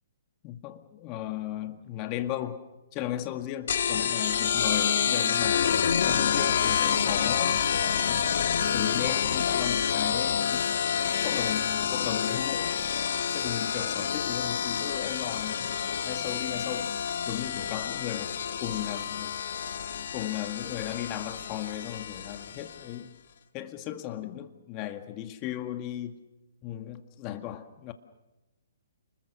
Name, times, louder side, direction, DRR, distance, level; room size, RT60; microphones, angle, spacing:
voice 1, 0.4-2.6 2.9-5.6 6.0-7.7 8.1-8.3 8.7-10.7 11.2-12.8 13.3-15.7 16.0-16.9 17.3-19.4 20.1-23.1 23.5-26.2 26.6-27.9, left 12 dB, 30° left, 1.9 m, -36 dB
sound 1, 3.7-22.8, left 8 dB, 60° left, 2.0 m, -28 dB
30.0 x 21.0 x 6.7 m
figure-of-eight pair, 130°, 0 cm